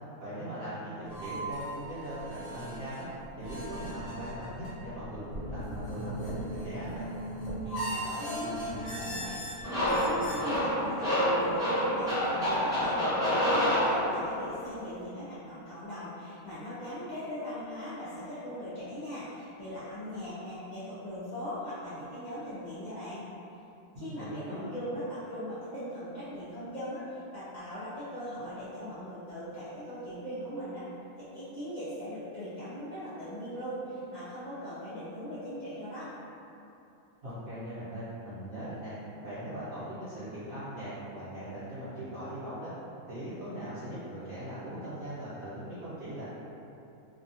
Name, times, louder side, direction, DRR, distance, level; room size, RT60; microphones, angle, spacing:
voice 1, 0.2-3.1 3.4-7.1 23.9-24.6 37.2-38.9 39.2-42.7 43.1-46.2, right 1 dB, 55° right, -16 dB, 1.0 m, -40 dB
sound 1, 1.1-10.3, right 1 dB, 55° left, 0.9 m, -38 dB
voice 2, 7.6-23.2 24.0-30.8 31.2-36.1, equal, 75° left, -13 dB, 0.4 m, -40 dB
sound 2, 9.6-14.4, equal, 5° right, 0.6 m, -27 dB
2.7 x 2.3 x 2.6 m, 2.8 s
omnidirectional pair, 1.5 m